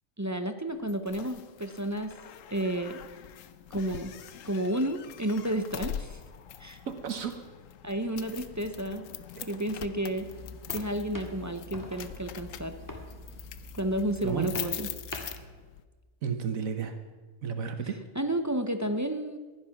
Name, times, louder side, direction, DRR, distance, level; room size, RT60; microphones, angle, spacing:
voice 1, 0.2-2.1 2.5-3.0 3.7-4.1 4.4-6.2 6.6-6.8 7.8-9.1 9.5-10.3 10.7-12.7 13.7-14.9 18.2-19.4, right 1 dB, 20° right, 8 dB, 0.4 m, -31 dB
sound 1, 0.9-15.8, left 10 dB, 70° left, 1.1 m, -43 dB
voice 2, 6.9-7.4 9.3-9.5 14.2-14.5 16.2-16.9 17.4-18.0, right 6 dB, 75° right, 7 dB, 1.4 m, -32 dB
sound 2, 10.2-15.4, equal, 15° left, 1.8 m, -44 dB
15.5 x 11.0 x 5.9 m, 1.3 s
omnidirectional pair, 1.4 m